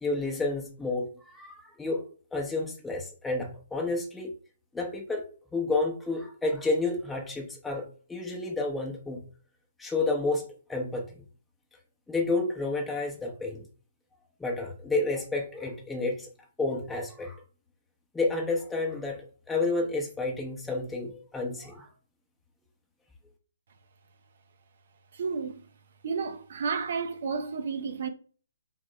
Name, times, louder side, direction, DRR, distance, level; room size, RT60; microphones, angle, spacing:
voice 1, 0.0-2.0 2.3-4.3 4.7-5.3 5.5-9.3 9.8-11.1 12.1-13.7 14.4-16.3 16.6-17.4 18.1-21.9, left 3 dB, 5° left, 0.7 m, -30 dB
voice 2, 25.2-25.6 26.0-28.1, right 5 dB, 55° right, 0.5 m, -31 dB
3.6 x 3.6 x 3.2 m
figure-of-eight pair, 135°, 0 cm